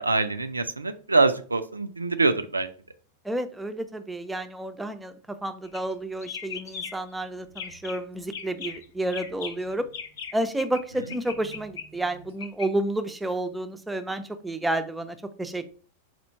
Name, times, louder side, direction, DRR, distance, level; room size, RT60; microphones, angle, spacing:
voice 1, 0.0-2.7, right 3 dB, 80° right, 9 dB, 0.3 m, -24 dB
voice 2, 3.2-9.9 10.3-15.7, right 1 dB, 5° right, 8 dB, 0.4 m, -30 dB
sound 1, 5.6-5.9 6.2-7.1 7.5-8.0 8.3-10.8 11.1-12.7, left 6 dB, 60° left, 0.5 m, -38 dB
4.4 x 2.4 x 4.3 m, 0.42 s
figure-of-eight pair, 90°, 0 cm